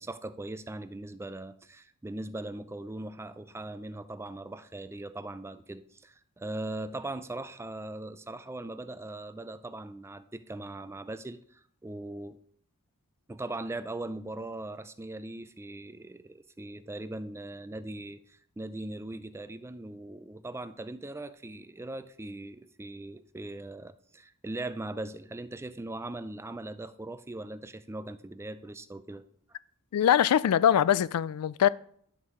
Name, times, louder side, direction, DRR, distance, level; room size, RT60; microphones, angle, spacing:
voice 1, 0.0-12.4 13.3-29.2, right 2 dB, 10° right, 0.4 m, -40 dB
voice 2, 29.9-31.7, left 9 dB, 80° left, 0.3 m, -23 dB
11.0 x 6.3 x 3.6 m
head